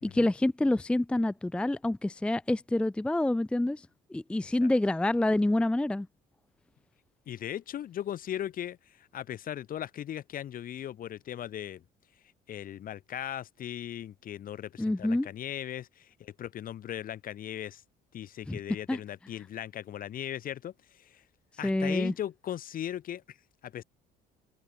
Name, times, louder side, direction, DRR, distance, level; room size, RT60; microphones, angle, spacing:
voice 1, 0.0-3.9 4.1-6.1 14.8-15.3 18.5-18.6 18.9-19.0 21.6-22.1, left 1 dB, 5° left, 0.5 m, -27 dB
voice 2, 7.3-11.8 12.5-17.8 18.1-21.2 21.6-23.4 23.6-23.8, left 11 dB, 55° left, 2.5 m, -38 dB
open air
cardioid pair, 110°, 17 cm